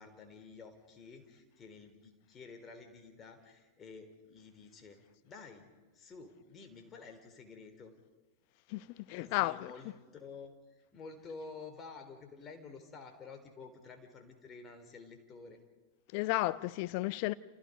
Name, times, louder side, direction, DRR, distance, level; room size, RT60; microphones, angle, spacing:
voice 1, 0.0-5.7 5.9-7.9 9.2-15.6, left 4 dB, 25° left, 3.9 m, -51 dB
voice 2, 8.7-9.7 16.1-17.3, left 19 dB, 45° left, 0.8 m, -33 dB
29.5 x 28.5 x 5.3 m
figure-of-eight pair, 90°, 0 cm